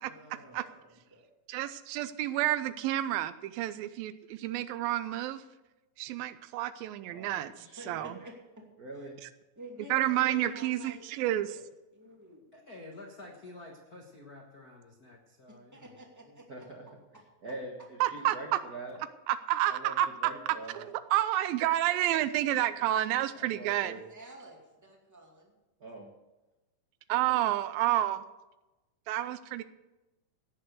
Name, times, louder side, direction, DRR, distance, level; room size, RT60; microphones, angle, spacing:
voice 1, 0.0-1.3 7.3-8.3 8.9-9.1 9.6-11.6 11.9-12.4 15.5-16.7 23.7-25.5, right 1 dB, 5° right, -1 dB, 1.7 m, -50 dB
voice 2, 1.5-5.4 6.0-8.1 9.9-11.5 18.0-18.6 19.3-20.3 20.7-23.9 27.1-28.2 29.1-29.6, right 13 dB, 85° right, 13 dB, 2.4 m, -30 dB
voice 3, 7.1-8.1 8.8-9.2 16.5-16.8 17.4-19.0 19.7-19.9 20.2-20.9 23.4-24.0 25.8-26.0, right 2 dB, 55° right, -1 dB, 1.0 m, -44 dB
voice 4, 12.5-16.0 16.2-16.7, left 2 dB, 60° left, 1 dB, 0.9 m, -50 dB
17.0 x 6.9 x 6.6 m, 1.0 s
omnidirectional pair, 4.1 m